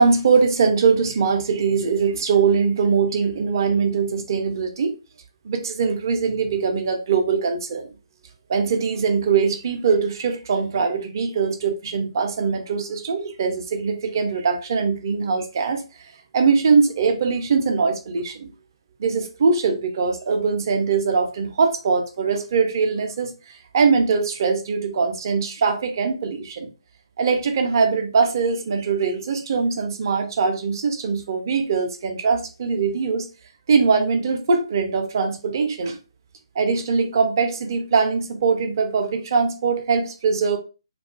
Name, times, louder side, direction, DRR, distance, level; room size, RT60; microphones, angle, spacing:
voice 1, 0.0-4.9 5.4-7.9 8.5-15.8 16.3-18.5 19.0-23.3 23.7-26.7 27.2-33.3 33.7-36.0 36.6-40.6, right 5 dB, 40° right, 0.5 m, -21 dB
2.4 x 2.3 x 2.2 m
figure-of-eight pair, 140°, 3 cm